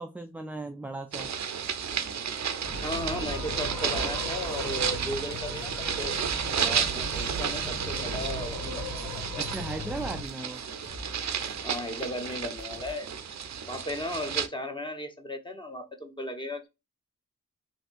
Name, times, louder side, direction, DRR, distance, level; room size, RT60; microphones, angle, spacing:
voice 1, 0.0-1.3 9.4-10.6, right 2 dB, 5° right, 0.3 m, -37 dB
sound 1, 1.1-14.5, right 7 dB, 60° right, 0.5 m, -32 dB
sound 2, 2.6-10.2, left 1 dB, 80° left, 1.7 m, -38 dB
voice 2, 2.8-6.2 6.5-9.4 11.6-13.1 13.7-16.7, left 1 dB, 15° left, 1.0 m, -36 dB
sound 3, 3.8-13.1, equal, 60° left, 1.3 m, -49 dB
3.4 x 2.6 x 2.4 m
cardioid pair, 60°, 31 cm